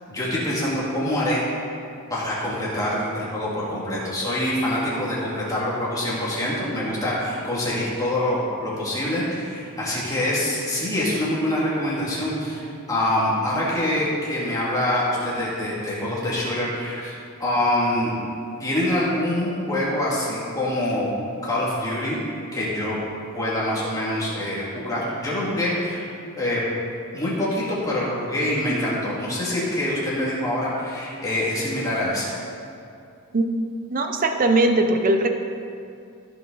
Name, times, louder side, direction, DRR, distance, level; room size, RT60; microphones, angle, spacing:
voice 1, 0.1-1.4 2.1-17.1 17.4-18.2 18.6-21.1 21.4-22.2 22.5-23.0 23.3-26.0 26.4-26.6 27.1-32.3, left 1 dB, 15° left, -7 dB, 2.4 m, -25 dB
voice 2, 33.9-35.3, right 2 dB, 40° right, 5 dB, 0.7 m, -20 dB
14.5 x 6.0 x 4.0 m, 2.5 s
head